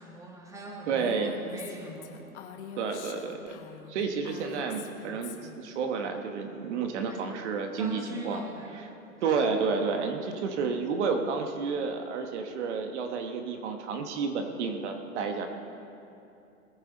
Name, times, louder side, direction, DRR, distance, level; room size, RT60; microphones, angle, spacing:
voice 1, 0.0-2.4 7.1-7.3 7.8-8.9, equal, 5° right, 0 dB, 1.5 m, -42 dB
voice 2, 0.9-1.4 2.8-3.5 3.9-8.4 9.2-15.5, right 5 dB, 50° right, 5 dB, 1.3 m, -30 dB
Female speech woman speaking, 1.0-5.6, left 8 dB, 50° left, 1.4 m, -44 dB
20.0 x 9.2 x 4.0 m, 2.7 s
hypercardioid pair, 125°, 44 cm